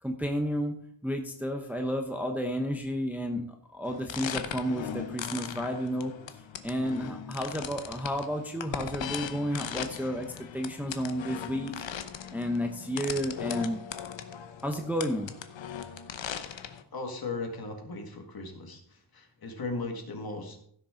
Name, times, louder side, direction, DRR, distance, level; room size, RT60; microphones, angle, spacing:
voice 1, 0.0-0.8 1.0-3.4 3.7-6.1 6.6-10.3 10.5-11.8 12.3-13.8 14.6-15.3, equal, 5° right, 3 dB, 0.8 m, -31 dB
sound 1, 3.9-16.8, left 8 dB, 70° left, 0.9 m, -39 dB
voice 2, 16.9-18.8 19.1-20.6, left 3 dB, 50° left, 3 dB, 2.0 m, -37 dB
16.0 x 6.6 x 3.8 m, 0.66 s
wide cardioid pair, 160°, 47 cm